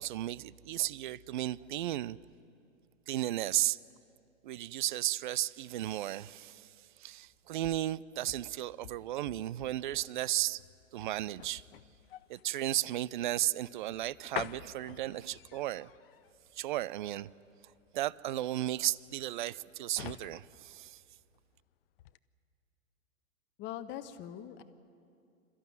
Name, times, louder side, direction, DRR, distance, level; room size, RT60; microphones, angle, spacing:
voice 1, 0.0-2.2 3.1-3.8 4.4-6.7 7.0-10.6 10.9-11.6 12.3-15.9 16.6-17.3 17.9-21.0, right 14 dB, 40° right, 0.4 m, -34 dB
sound 1, 7.2-21.6 22.0-22.2, left 13 dB, 45° left, 0.7 m, -49 dB
voice 2, 23.6-24.6, left 11 dB, 25° left, 1.1 m, -42 dB
27.0 x 14.0 x 9.2 m
figure-of-eight pair, 115°, 41 cm